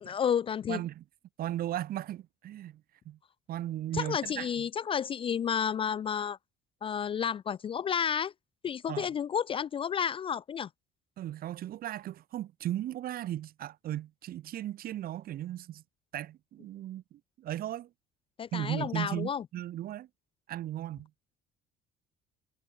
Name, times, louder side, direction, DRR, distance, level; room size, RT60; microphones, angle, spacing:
voice 1, 0.0-0.8 3.9-6.4 6.8-8.3 8.6-10.7 18.4-19.4, left 8 dB, 30° left, 0.4 m, -31 dB
voice 2, 0.7-1.0 1.4-3.2 3.5-4.7 8.9-9.1 11.2-15.8 16.1-17.9 18.5-20.1 20.5-21.1, right 13 dB, 55° right, 2.7 m, -36 dB
cardioid pair, 150°, 19 cm